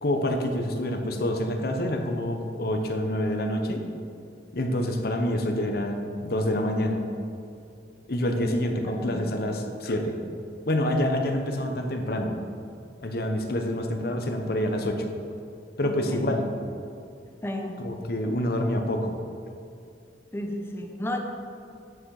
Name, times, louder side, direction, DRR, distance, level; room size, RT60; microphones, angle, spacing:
voice 1, 0.0-3.8 4.5-7.0 8.1-10.2 10.6-12.3 13.0-15.1 15.8-16.5 17.8-19.2, left 1 dB, 55° left, 4 dB, 0.9 m, -27 dB
voice 2, 8.8-9.4 15.8-16.4 17.4-17.8 20.3-21.2, left 1 dB, 15° left, 2 dB, 0.7 m, -33 dB
9.3 x 6.1 x 4.8 m, 2.5 s
head